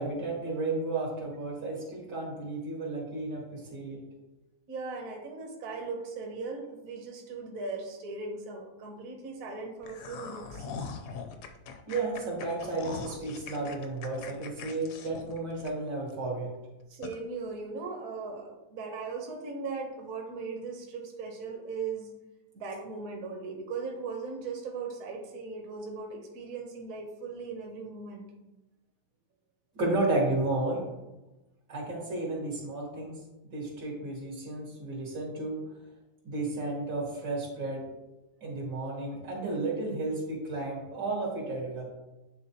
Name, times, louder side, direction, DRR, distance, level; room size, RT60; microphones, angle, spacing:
voice 1, 0.0-4.0 11.9-16.5 29.8-30.9 31.7-33.2 33.5-35.6 36.2-37.8 38.4-41.9, right 2 dB, 85° right, -2 dB, 2.4 m, -32 dB
voice 2, 4.7-10.7 16.9-22.1 22.5-28.3, right 4 dB, 60° right, 1 dB, 1.1 m, -38 dB
sound 1, 9.8-16.1 16.5-16.6 17.0-17.2, left 5 dB, 70° left, 0.9 m, -42 dB
9.5 x 3.6 x 2.8 m, 1.0 s
omnidirectional pair, 1.8 m